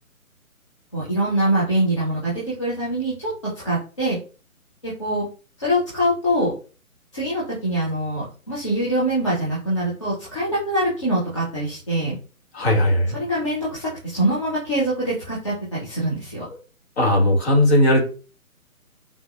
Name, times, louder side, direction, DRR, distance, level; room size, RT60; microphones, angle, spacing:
voice 1, 0.9-3.3 3.6-4.2 4.8-5.2 5.6-6.5 7.1-12.2 13.1-16.5, right 1 dB, 20° left, -8 dB, 0.5 m, -24 dB
voice 2, 12.5-13.2 17.0-18.0, left 1 dB, 45° left, -1 dB, 1.6 m, -17 dB
3.7 x 2.2 x 2.4 m, 0.36 s
figure-of-eight pair, 140°, 43 cm